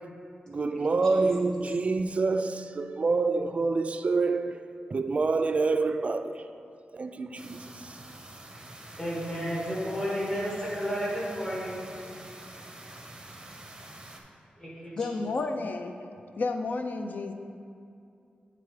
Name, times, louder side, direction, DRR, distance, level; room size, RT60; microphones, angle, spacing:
voice 1, 0.5-6.5 6.9-8.0, right 3 dB, 40° right, 8 dB, 0.3 m, -27 dB
sound 1, 7.4-14.2, right 1 dB, 20° right, 0.7 m, -46 dB
voice 2, 9.0-11.8 14.6-15.3, equal, 15° left, -7 dB, 1.7 m, -32 dB
voice 3, 14.9-16.0 16.4-17.3, left 3 dB, 60° left, 6 dB, 0.5 m, -31 dB
8.5 x 3.9 x 4.8 m, 2.5 s
wide cardioid pair, 105°, 3 cm